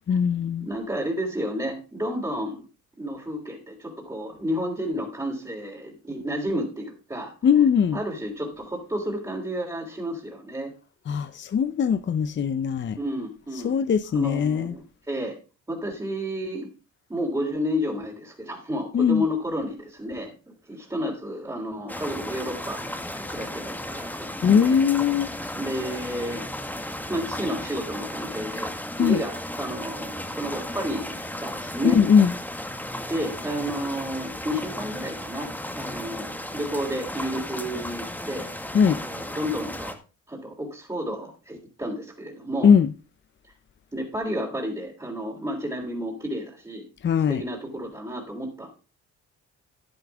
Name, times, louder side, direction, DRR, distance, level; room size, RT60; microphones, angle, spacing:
voice 1, 0.1-0.7 7.4-8.0 11.1-13.0 13.6-14.7 18.9-19.2 24.4-25.3 29.0-29.2 31.8-32.3 38.7-39.0 42.6-42.9 47.0-47.4, left 7 dB, 40° left, 0.6 m, -20 dB
voice 2, 0.6-2.7 3.0-7.3 7.9-10.7 13.0-13.8 14.1-15.4 15.7-16.7 17.1-20.3 20.7-24.8 25.5-26.8 27.1-32.0 33.1-38.5 38.9-40.0 40.3-42.7 43.9-46.9 47.3-48.7, equal, 15° right, 3.4 m, -31 dB
sound 1, 21.9-39.9, left 1 dB, 5° left, 1.7 m, -35 dB
10.5 x 10.5 x 3.5 m
cardioid pair, 90°, 30 cm